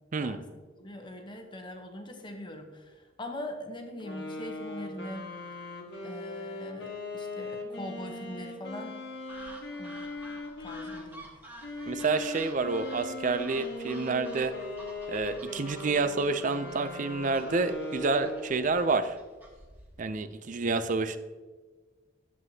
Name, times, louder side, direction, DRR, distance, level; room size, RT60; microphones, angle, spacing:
voice 1, 0.8-5.4 6.0-9.0 9.8-10.0 10.6-11.2, left 1 dB, 25° left, 3 dB, 0.9 m, -42 dB
sound 1, 4.0-11.0 11.6-18.8, left 2 dB, 60° left, 1.4 m, -39 dB
sound 2, 9.3-20.0, right 1 dB, 10° right, 1.2 m, -50 dB
voice 2, 11.9-14.5 15.1-19.2 20.0-21.2, right 3 dB, 40° right, 12 dB, 0.4 m, -29 dB
11.0 x 7.6 x 2.8 m, 1.3 s
head